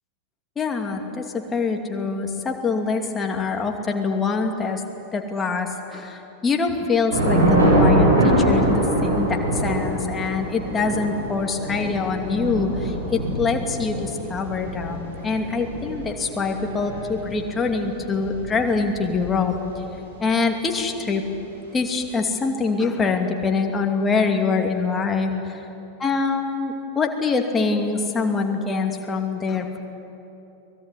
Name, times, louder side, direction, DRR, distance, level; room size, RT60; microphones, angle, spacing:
voice 1, 0.6-4.8 5.1-19.5 20.2-21.2 21.7-25.6 26.0-29.8, left 4 dB, 20° left, 3 dB, 2.7 m, -24 dB
Thunder / Rain, 7.1-19.6, right 1 dB, 70° right, 8.0 m, -23 dB
23.5 x 21.0 x 9.8 m, 2.9 s
figure-of-eight pair, 90°, 0 cm